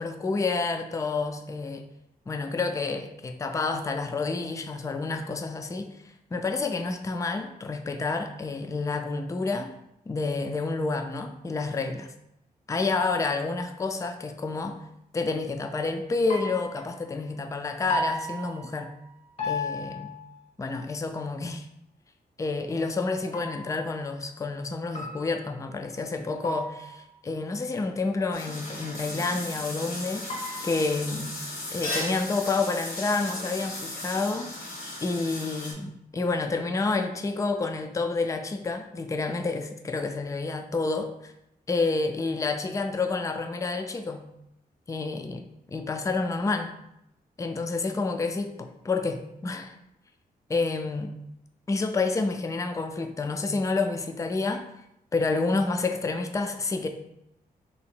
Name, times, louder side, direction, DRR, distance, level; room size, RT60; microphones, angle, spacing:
voice 1, 0.0-1.8 2.3-6.0 6.3-9.7 10.1-12.1 12.7-14.8 15.1-18.9 19.4-20.1 20.6-21.7 22.4-30.3 30.6-31.4 31.7-34.5 35.0-41.3 41.7-44.3 44.9-45.4 45.7-46.7 47.4-49.7 50.5-51.1 51.7-54.6 55.1-56.9, left 3 dB, 20° left, 6 dB, 0.4 m, -29 dB
sound 1, 16.3-17.1 17.9-19.1 19.4-20.4 23.3-24.0 24.9-25.7 26.4-27.1 30.3-31.1, left 2 dB, 40° left, 0.8 m, -35 dB
sound 2, 28.3-35.7, left 1 dB, 70° left, 1.3 m, -36 dB
3.1 x 2.8 x 4.3 m, 0.81 s
cardioid pair, 90°, 16 cm